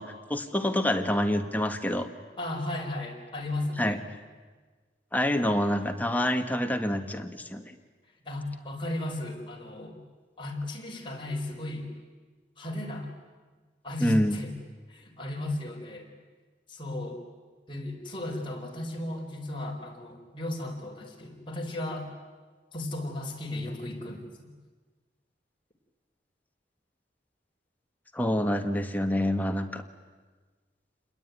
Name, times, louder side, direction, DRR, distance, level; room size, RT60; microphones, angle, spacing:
voice 1, 0.0-2.1 3.8-4.0 5.1-7.7 14.0-14.4 28.1-29.8, equal, 10° left, 5 dB, 1.6 m, -27 dB
voice 2, 2.4-4.0 8.2-10.0 10.4-11.9 12.6-13.1 13.8-14.5 14.9-16.1 16.7-17.2 17.7-22.1 22.7-24.5, left 1 dB, 30° left, 0 dB, 4.7 m, -35 dB
29.0 x 21.5 x 9.5 m, 1.4 s
head